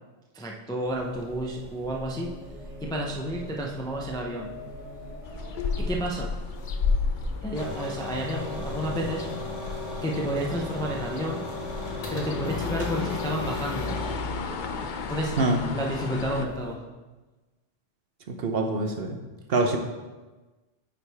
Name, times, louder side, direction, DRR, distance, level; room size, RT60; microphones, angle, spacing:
voice 1, 0.3-2.3 2.8-4.5 5.8-6.3 7.4-9.3 10.0-11.4 12.1-13.9 15.1-15.4 15.7-16.8, right 1 dB, 5° left, -1 dB, 0.4 m, -31 dB
sound 1, 0.8-16.7, equal, 85° right, 2.4 m, -44 dB
sound 2, 5.2-16.5, left 5 dB, 55° left, 0.6 m, -33 dB
sound 3, 7.5-14.2, left 3 dB, 85° left, 1.6 m, -35 dB
voice 2, 18.3-19.2 19.5-19.8, right 2 dB, 60° right, 4 dB, 0.9 m, -25 dB
8.9 x 4.8 x 3.4 m, 1.2 s
omnidirectional pair, 1.2 m